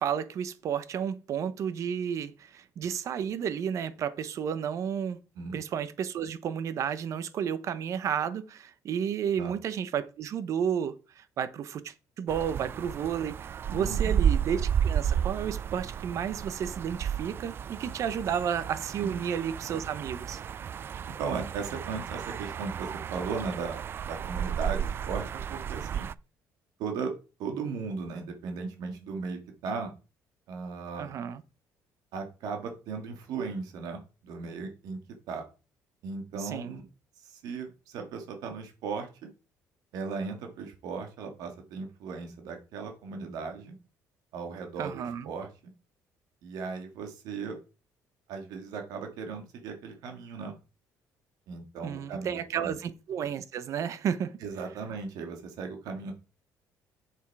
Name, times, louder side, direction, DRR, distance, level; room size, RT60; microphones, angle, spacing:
voice 1, 0.0-5.2 5.5-20.4 30.9-31.4 36.4-36.7 44.8-45.3 51.8-54.4, right 8 dB, 55° right, 0.9 m, -32 dB
sound 1, 12.3-26.1, right 8 dB, 35° right, 0.3 m, -32 dB
voice 2, 13.7-14.2 19.0-19.2 21.2-26.1 26.8-27.1 27.4-29.9 30.5-31.1 32.1-35.0 35.3-35.4 36.0-36.8 37.2-39.3 39.9-43.7 44.3-45.5 46.4-47.6 48.3-50.5 51.5-52.8 54.4-56.1, right 5 dB, 80° right, 2.2 m, -37 dB
7.3 x 7.3 x 4.8 m
cardioid pair, 135°, 6 cm